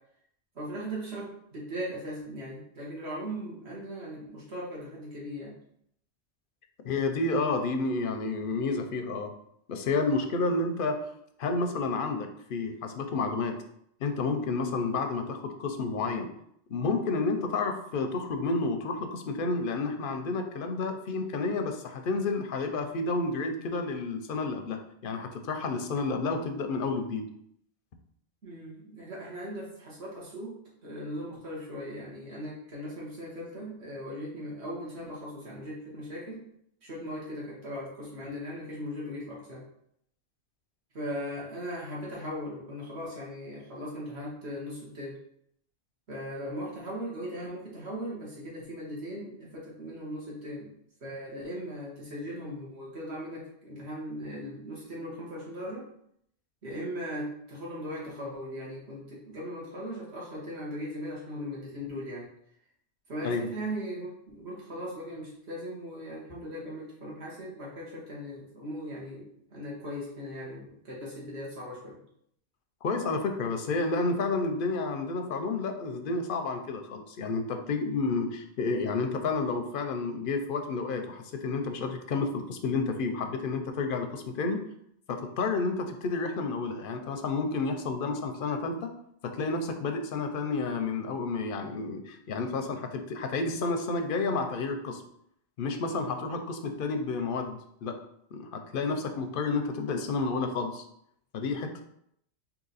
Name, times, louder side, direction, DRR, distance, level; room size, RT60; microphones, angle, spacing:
voice 1, 0.5-5.6 28.4-30.5 30.8-36.4 36.8-39.6 40.9-45.2 46.1-50.7 51.0-55.8 56.6-62.3 63.1-72.0, equal, 65° right, -5 dB, 1.7 m, -38 dB
voice 2, 6.8-9.3 9.7-11.0 11.4-13.6 14.0-16.3 16.7-27.2 63.2-63.4 72.8-84.6 85.1-88.9 89.2-95.0 95.6-97.9 98.3-100.8 101.3-101.8, left 3 dB, 60° left, 5 dB, 0.6 m, -30 dB
3.8 x 2.9 x 3.9 m, 0.73 s
omnidirectional pair, 1.2 m